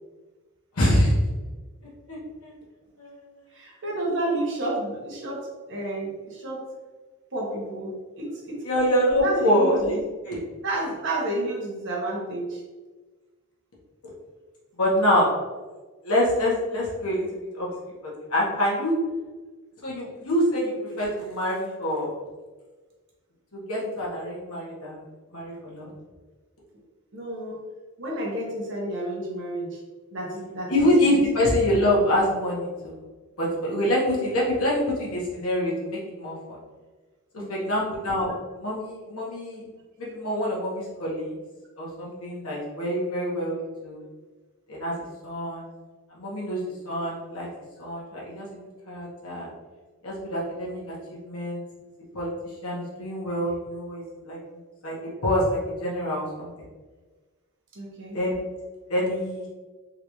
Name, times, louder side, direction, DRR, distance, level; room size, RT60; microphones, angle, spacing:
voice 1, 0.8-1.1 2.1-2.5 3.0-3.1 8.6-10.4 14.7-15.3 16.0-17.3 17.5-17.7 18.3-19.0 19.8-22.1 23.5-25.0 25.3-25.9 30.7-33.0 33.4-36.6 37.5-39.6 40.0-41.3 41.8-43.6 43.8-44.0 44.7-45.7 46.1-46.6 46.8-47.5 47.8-48.5 48.9-49.5 50.0-50.9 51.2-51.6 52.1-52.3 52.6-54.4 54.8-56.5 58.1-58.4 58.9-59.4, equal, 75° left, -5 dB, 1.2 m, -25 dB
voice 2, 3.5-6.6 7.3-8.6 9.2-10.0 10.6-12.6 27.1-27.6 28.0-29.8 30.1-31.5 37.4-37.7 57.7-58.2, right 1 dB, 55° right, -3 dB, 1.0 m, -31 dB
3.8 x 2.5 x 3.0 m, 1.3 s
head